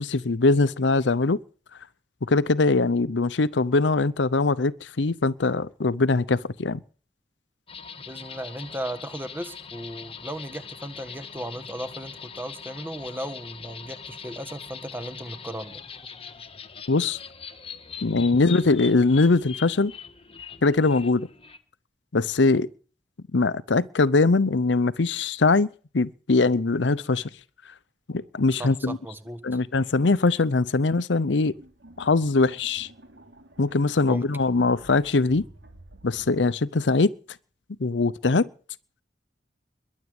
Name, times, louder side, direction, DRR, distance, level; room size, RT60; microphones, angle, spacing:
voice 1, 0.0-1.4 2.3-6.8 16.9-17.2 18.0-19.9 20.6-21.3 22.1-22.7 23.3-25.7 25.9-27.2 28.1-29.0 29.4-31.5 32.0-32.9 33.6-35.4 36.0-37.1 37.8-38.5, left 3 dB, 75° left, 0.7 m, -22 dB
sound 1, 7.7-21.6, left 6 dB, 30° left, 1.4 m, -42 dB
voice 2, 8.1-15.8 28.6-29.6 34.1-34.3, right 1 dB, 10° right, 1.6 m, -36 dB
sound 2, 31.4-36.4, right 1 dB, 80° right, 3.2 m, -51 dB
22.0 x 8.4 x 7.8 m
head